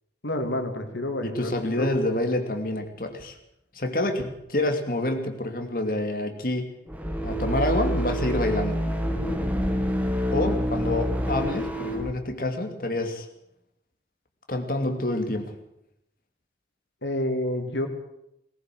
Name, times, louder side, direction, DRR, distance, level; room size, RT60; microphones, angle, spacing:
voice 1, 0.2-1.9 17.0-17.9, left 1 dB, 85° left, 5 dB, 3.2 m, -29 dB
voice 2, 1.2-3.4 3.7-6.7 7.2-8.8 10.3-13.3 14.5-15.5, left 1 dB, 50° left, 5 dB, 2.7 m, -27 dB
sound 1, 6.9-12.1, equal, 10° right, 2.1 m, -27 dB
19.5 x 17.5 x 7.8 m, 0.81 s
head